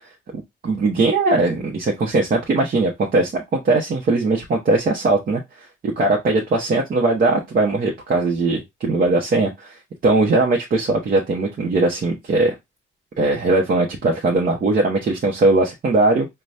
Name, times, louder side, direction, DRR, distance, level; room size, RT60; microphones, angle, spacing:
voice 1, 0.3-12.5 13.2-16.3, right 2 dB, 45° right, -1 dB, 0.9 m, -20 dB
4.0 x 2.3 x 3.1 m, 0.19 s
cardioid pair, 90°, 20 cm